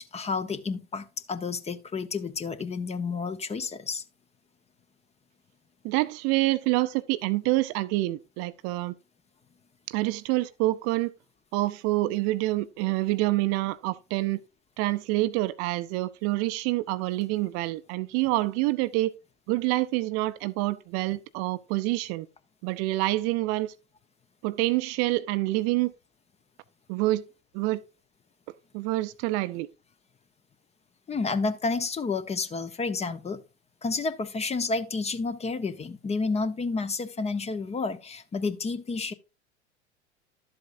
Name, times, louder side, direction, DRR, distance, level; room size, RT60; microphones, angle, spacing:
voice 1, 0.1-4.0 31.1-33.4 33.8-39.1, left 4 dB, 20° left, 0.8 m, -30 dB
voice 2, 5.8-8.9 9.9-11.1 11.5-14.4 14.8-19.1 19.5-22.3 22.6-23.7 24.4-25.9 26.9-27.2 27.5-27.8 28.7-29.7, right 19 dB, 45° right, 0.6 m, -27 dB
11.5 x 7.8 x 2.5 m
figure-of-eight pair, 80°, 34 cm